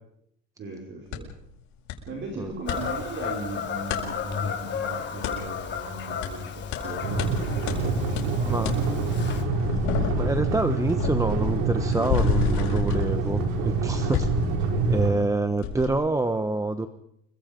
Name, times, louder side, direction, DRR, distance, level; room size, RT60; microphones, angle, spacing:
voice 1, 0.6-1.3 2.1-7.3 7.5-9.0 15.0-15.3, right 3 dB, 40° right, 0 dB, 5.5 m, -38 dB
sound 1, 1.1-1.2 1.9-2.0 2.3-2.8 3.9-4.0 5.2-5.4 6.2-6.3 6.7-6.8 7.2-7.3 7.7-7.8 8.2-8.3 8.6-8.8 9.2-15.3 15.6-15.9, left 7 dB, 75° left, 7.6 m, -30 dB
Fowl / Bird vocalization bird call bird song, 2.7-9.4, left 7 dB, 40° left, 4.3 m, -33 dB
sound 2, 7.0-15.1, right 3 dB, 80° right, 6.4 m, -26 dB
voice 2, 10.1-13.4 13.6-14.3 14.9-16.9, right 2 dB, 10° right, 9 dB, 1.2 m, -26 dB
29.5 x 25.0 x 5.4 m, 0.74 s
cardioid pair, 135°, 29 cm